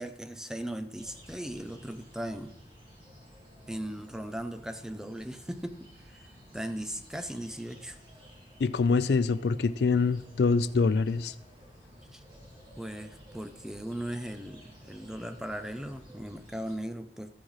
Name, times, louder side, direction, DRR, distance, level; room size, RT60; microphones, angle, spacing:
voice 1, 0.0-2.5 3.7-6.2 6.5-8.0 12.1-12.2 12.8-17.3, right 1 dB, 5° right, 9 dB, 0.4 m, -38 dB
sound 1, 0.9-16.8, equal, 25° right, 2.0 m, -53 dB
voice 2, 8.6-11.3, left 4 dB, 70° left, 14 dB, 0.4 m, -25 dB
13.5 x 8.4 x 3.2 m, 0.85 s
head